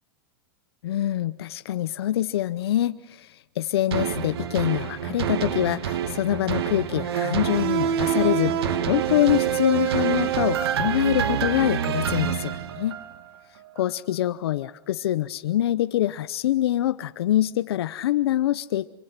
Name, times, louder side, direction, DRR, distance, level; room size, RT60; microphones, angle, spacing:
voice 1, 0.8-13.0 13.8-18.9, left 13 dB, 85° left, 12 dB, 0.7 m, -25 dB
sound 1, 3.9-13.3 13.8-13.9, right 9 dB, 85° right, 1.8 m, -26 dB
26.5 x 24.5 x 5.9 m, 1.0 s
supercardioid pair, 165°, 13 cm